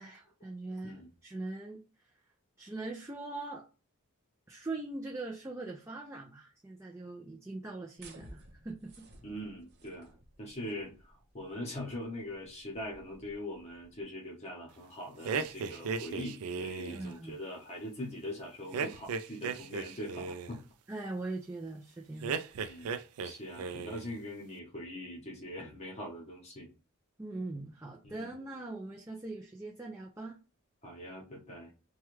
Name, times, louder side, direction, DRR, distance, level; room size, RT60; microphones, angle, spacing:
voice 1, 0.0-1.8 2.6-3.6 4.5-9.1 16.9-17.4 20.9-22.9 27.2-30.4, right 2 dB, 15° right, -1 dB, 0.4 m, -41 dB
sound 1, 8.0-14.0, right 2 dB, 50° right, 0.7 m, -57 dB
voice 2, 9.2-20.6 22.6-22.9 23.2-26.7 28.0-28.3 30.8-31.7, left 1 dB, 30° left, -2 dB, 1.0 m, -42 dB
sound 2, 15.2-17.1 18.7-20.6 22.2-23.3 23.6-24.1, right 5 dB, 90° right, 0.4 m, -36 dB
3.1 x 2.3 x 3.1 m, 0.33 s
head